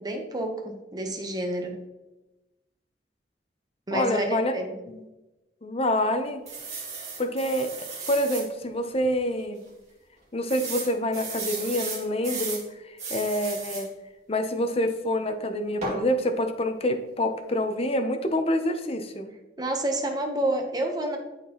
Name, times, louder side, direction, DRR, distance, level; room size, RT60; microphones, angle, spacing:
voice 1, 0.0-1.8 3.9-4.7 19.6-21.2, right 1 dB, 25° right, 3 dB, 0.9 m, -29 dB
voice 2, 3.9-4.5 4.9-5.0 5.6-6.4 7.2-9.6 10.3-13.9 14.3-19.3, left 1 dB, 35° left, 7 dB, 0.6 m, -27 dB
sound 1, 6.5-8.5 9.0-9.1 9.4-9.5 10.5-12.6 13.0-13.9 15.8-16.0, right 4 dB, 40° right, 1.9 m, -34 dB
11.0 x 4.4 x 2.9 m, 1.0 s
head